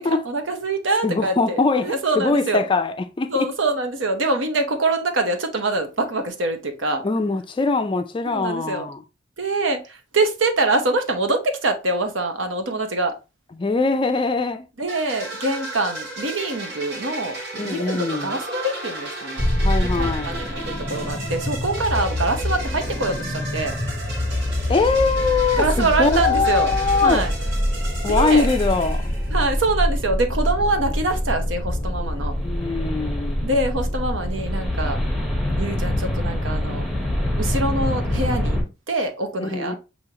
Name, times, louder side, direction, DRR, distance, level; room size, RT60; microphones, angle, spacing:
voice 1, 0.0-2.6 3.3-7.0 8.2-8.9 9.4-13.2 14.8-19.4 19.8-23.8 25.6-27.3 28.1-28.5 29.3-32.3 33.4-35.0 35.6-36.9 37.4-38.6 38.9-39.8, right 2 dB, 75° right, 0.9 m, -24 dB
voice 2, 1.0-3.5 7.0-9.0 13.6-14.7 17.6-18.4 19.6-20.4 24.7-27.2 28.0-29.0 32.0-32.1 32.4-33.5 39.4-39.8, left 4 dB, 25° left, 0.4 m, -22 dB
synth loop, 14.9-29.6, right 2 dB, 60° right, 1.7 m, -34 dB
sound 1, 19.4-38.6, left 1 dB, ahead, 0.9 m, -25 dB
6.1 x 2.8 x 2.8 m
head